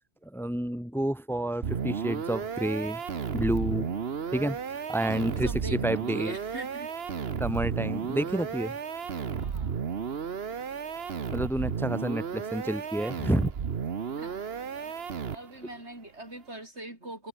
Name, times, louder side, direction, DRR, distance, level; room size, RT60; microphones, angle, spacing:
voice 1, 0.2-3.0 3.3-4.0 4.3-5.5 5.8-6.3 7.4-8.7 11.3-13.5, right 1 dB, ahead, 1.3 m, -29 dB
sound 1, 1.6-15.7, right 6 dB, 65° right, 1.4 m, -33 dB
voice 2, 5.3-6.9 9.3-9.8 14.2-15.0 15.3-17.3, right 1 dB, 85° right, 7.6 m, -43 dB
omnidirectional pair, 1.1 m